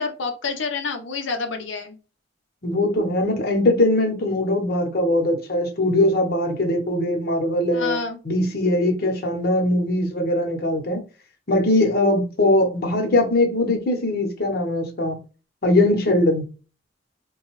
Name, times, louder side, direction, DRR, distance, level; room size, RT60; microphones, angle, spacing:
voice 1, 0.0-2.0 7.7-8.2, left 4 dB, 85° left, 0.7 m, -28 dB
voice 2, 2.6-8.0 8.2-11.0 11.5-15.2 15.6-16.4, left 1 dB, 55° left, 1.0 m, -21 dB
3.7 x 2.3 x 3.0 m
head